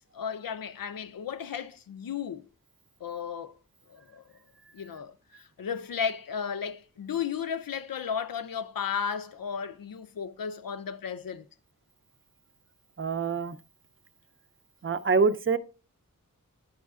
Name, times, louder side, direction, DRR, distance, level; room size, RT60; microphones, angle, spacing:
voice 1, 0.1-2.4 3.0-3.6 3.9-4.2 4.7-11.4, left 7 dB, 80° left, 0.6 m, -34 dB
voice 2, 13.0-13.6 14.8-15.6, right 4 dB, 40° right, 0.6 m, -25 dB
9.5 x 6.3 x 2.4 m
wide cardioid pair, 40°, 34 cm